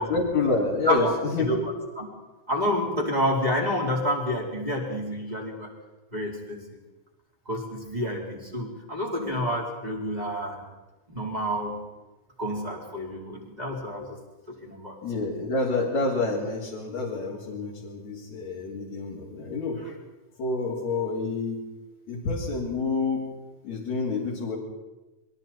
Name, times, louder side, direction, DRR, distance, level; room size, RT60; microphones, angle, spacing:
voice 1, 0.1-1.6 15.0-19.8 20.4-21.6 22.1-23.2 23.6-24.6, left 3 dB, 55° left, -5 dB, 4.4 m, -28 dB
voice 2, 2.5-5.7 6.1-6.6 7.5-10.7 11.1-11.8 12.4-14.2 14.5-15.0, equal, 10° right, -1 dB, 4.0 m, -29 dB
28.5 x 22.5 x 4.4 m, 1.1 s
omnidirectional pair, 3.9 m